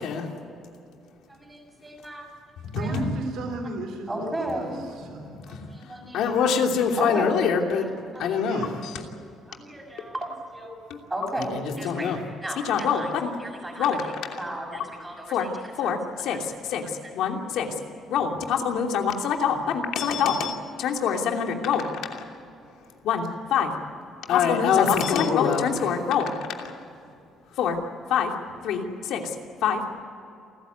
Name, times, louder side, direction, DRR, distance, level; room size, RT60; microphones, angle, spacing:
voice 1, 1.3-2.3 2.8-3.0 4.1-4.8 5.5-6.3 7.0-7.3 8.1-8.4 9.5-13.1 13.4-15.9 16.3-16.5 16.8-16.9, right 1 dB, 10° right, 1 dB, 6.2 m, -35 dB
voice 2, 2.8-5.4 8.4-8.9, right 3 dB, 75° right, 4 dB, 3.6 m, -35 dB
voice 3, 6.1-7.9 8.2-8.9 11.8-12.2 12.7-13.3 13.8-14.0 14.3-14.4 15.3-15.5 15.8-16.8 17.1-17.7 18.1-22.3 23.0-23.7 24.3-26.7 27.6-27.8 28.1-28.3 28.6-29.2 29.6-30.0, left 7 dB, 75° left, 3 dB, 2.9 m, -24 dB
28.5 x 14.5 x 9.5 m, 2.7 s
cardioid pair, 145°, 0 cm